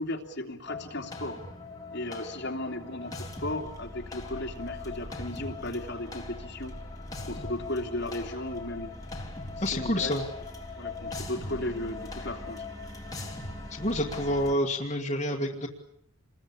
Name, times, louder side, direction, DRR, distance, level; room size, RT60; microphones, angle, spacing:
voice 1, 0.0-1.4 1.9-6.8 7.2-9.0 9.6-10.1 10.8-12.7, left 1 dB, 55° left, 1 dB, 3.0 m, -35 dB
sound 1, 0.7-14.5, left 2 dB, 15° left, 3.1 m, -40 dB
voice 2, 9.6-10.2 13.7-15.7, left 1 dB, 30° left, 0 dB, 2.0 m, -28 dB
27.5 x 21.5 x 8.6 m, 0.70 s
head